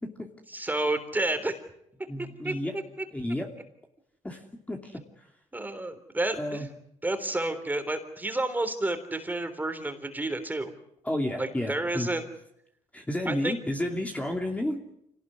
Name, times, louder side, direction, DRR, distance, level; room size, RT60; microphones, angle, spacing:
voice 1, 0.5-1.5 2.4-3.1 5.5-6.7 7.0-10.7 11.4-12.2 13.3-13.6, right 2 dB, 15° right, 8 dB, 3.6 m, -30 dB
voice 2, 2.1-2.7 3.1-3.5 4.2-4.4 4.7-5.0 6.4-6.7 11.0-12.1 12.9-14.8, left 1 dB, 10° left, 2 dB, 2.8 m, -31 dB
26.0 x 18.5 x 9.8 m, 0.78 s
cardioid pair, 105°, 13 cm